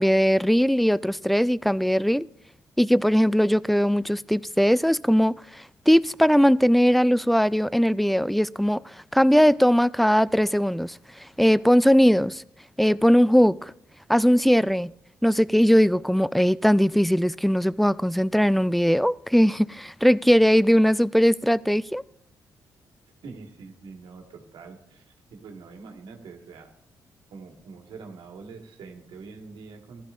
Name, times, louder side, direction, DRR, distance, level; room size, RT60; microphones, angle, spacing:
voice 1, 0.0-2.3 2.8-12.4 12.8-13.7 14.1-14.9 15.2-22.0, equal, ahead, 0.3 m, -20 dB
voice 2, 23.2-25.0 25.3-26.7 27.3-30.0, right 4 dB, 75° right, 1.6 m, -44 dB
15.0 x 11.5 x 2.5 m
supercardioid pair, 50°, 8 cm